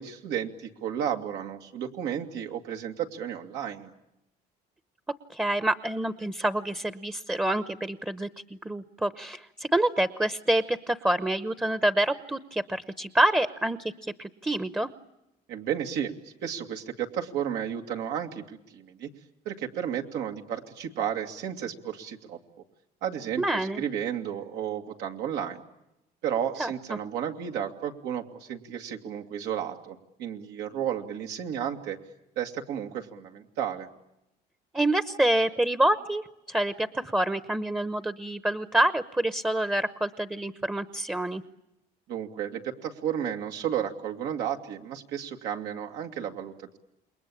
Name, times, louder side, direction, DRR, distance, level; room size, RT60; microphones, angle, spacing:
voice 1, 0.0-3.9 15.5-19.1 19.5-22.4 23.0-25.6 26.2-32.0 32.4-33.9 42.1-46.8, right 9 dB, 85° right, 3 dB, 2.4 m, -33 dB
voice 2, 5.3-14.9 23.4-23.8 26.6-27.0 34.7-41.4, right 1 dB, 10° right, 13 dB, 0.9 m, -27 dB
28.5 x 22.0 x 8.7 m, 0.89 s
cardioid pair, 110°, 17 cm